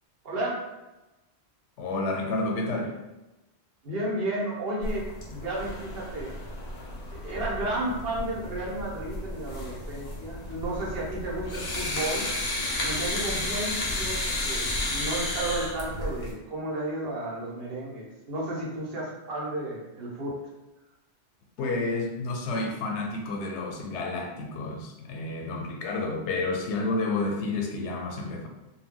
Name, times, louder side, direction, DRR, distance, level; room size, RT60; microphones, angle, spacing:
voice 1, 0.2-0.6 3.8-6.4 7.2-12.3 12.8-20.3, right 1 dB, 60° right, -4 dB, 1.0 m, -33 dB
voice 2, 1.8-3.0 21.6-28.5, left 2 dB, 90° left, 2 dB, 0.9 m, -30 dB
sound 1, 4.8-16.3, left 1 dB, 45° left, 0.7 m, -32 dB
2.2 x 2.1 x 3.6 m, 1.0 s
omnidirectional pair, 1.1 m